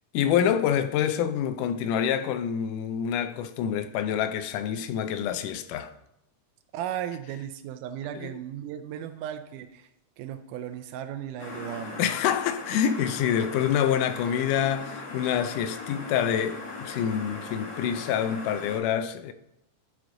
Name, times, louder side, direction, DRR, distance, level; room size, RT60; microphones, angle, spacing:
voice 1, 0.1-5.9 8.1-8.3 12.0-19.3, left 9 dB, 90° left, 2.1 m, -27 dB
voice 2, 6.7-9.9 10.2-12.0 13.4-13.5, right 10 dB, 90° right, 2.1 m, -36 dB
sound 1, 11.4-18.8, left 3 dB, 55° left, 1.3 m, -39 dB
10.5 x 5.0 x 3.7 m
omnidirectional pair, 3.6 m